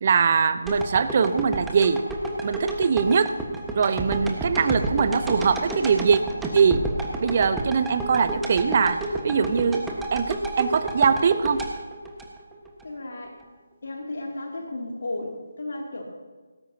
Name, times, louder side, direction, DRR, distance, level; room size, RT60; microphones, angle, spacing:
voice 1, 0.0-2.0 2.4-3.3 3.8-6.2 6.5-6.8 7.2-9.9 10.1-11.6, right 6 dB, 40° right, 12 dB, 0.8 m, -22 dB
sound 1, 0.7-12.8 13.3-13.4, right 1 dB, 5° right, 1.3 m, -30 dB
voice 2, 12.8-13.4 13.8-16.0, left 2 dB, 60° left, 0 dB, 2.7 m, -34 dB
18.0 x 16.0 x 2.8 m, 1.3 s
figure-of-eight pair, 150°, 0 cm